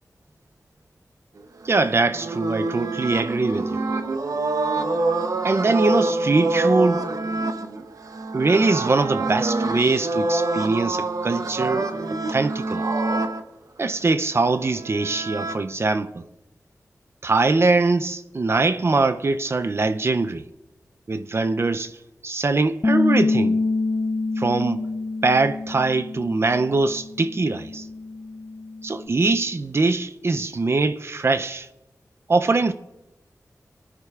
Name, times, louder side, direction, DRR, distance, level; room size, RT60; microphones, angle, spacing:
voice 1, 1.6-3.8 5.4-7.1 8.3-11.9 12.3-12.8 13.8-16.2 17.2-20.5 21.1-22.0 22.2-23.6 24.4-24.8 25.2-27.9 28.8-31.7 32.3-32.7, right 3 dB, 45° right, 0.5 m, -22 dB
sound 1, 1.6-13.4 14.5-15.6, right 2 dB, 70° right, 0.8 m, -26 dB
Bass guitar, 22.8-29.1, left 3 dB, 30° left, 0.6 m, -26 dB
22.5 x 9.9 x 2.4 m
wide cardioid pair, 90°, 6 cm